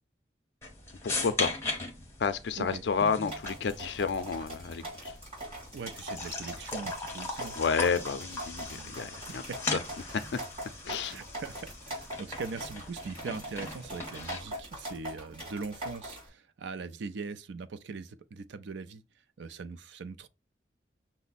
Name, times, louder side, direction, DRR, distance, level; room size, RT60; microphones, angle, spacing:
sound 1, 0.6-14.6, left 3 dB, 15° left, 0.9 m, -39 dB
voice 1, 1.0-1.6 2.2-5.2 7.6-9.8 10.3-10.4 10.8-11.2, left 5 dB, 80° left, 0.4 m, -31 dB
sound 2, 3.3-16.3, right 1 dB, 30° right, 2.8 m, -42 dB
voice 2, 5.7-7.6 8.7-9.0 9.5-9.8 11.0-19.0 19.4-20.3, right 4 dB, 90° right, 0.4 m, -41 dB
5.9 x 2.1 x 4.0 m
head